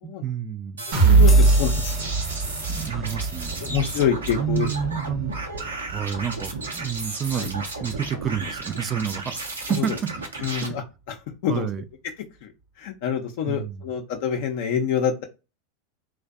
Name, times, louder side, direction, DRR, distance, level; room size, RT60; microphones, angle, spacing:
voice 1, 0.0-0.8 2.7-4.1 4.4-5.3 5.9-10.1 10.6-10.8 11.5-11.8 13.5-13.9, right 8 dB, 35° right, 0.4 m, -29 dB
sound 1, 0.8-10.7, right 3 dB, 90° right, 0.7 m, -34 dB
voice 2, 0.9-2.1 3.6-4.7 7.3-7.5 9.8-9.9 10.4-10.8 11.1-11.2 11.4-11.7 12.4-12.5 12.8-15.2, left 8 dB, 60° left, 0.5 m, -26 dB
sound 2, 0.9-8.7 9.1-9.2 9.6-9.7, right 3 dB, 60° right, 0.8 m, -23 dB
sound 3, 1.3-6.2 6.7-6.8, left 3 dB, 20° left, 0.7 m, -42 dB
2.5 x 2.1 x 2.4 m
hypercardioid pair, 90°, 0 cm